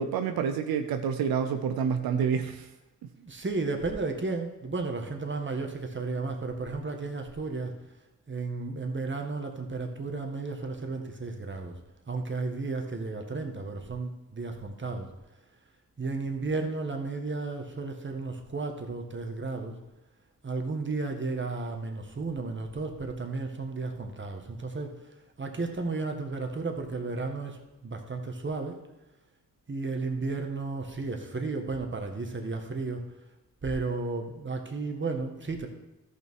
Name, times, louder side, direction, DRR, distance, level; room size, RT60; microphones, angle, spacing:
voice 1, 0.0-2.7, right 7 dB, 90° right, 7 dB, 0.7 m, -28 dB
voice 2, 3.1-7.7 8.3-11.7 12.1-15.1 16.0-19.8 20.4-28.8 29.7-33.1 33.6-35.7, right 3 dB, 35° right, 4 dB, 1.8 m, -33 dB
13.5 x 5.9 x 4.8 m, 0.96 s
cardioid pair, 55°, 35 cm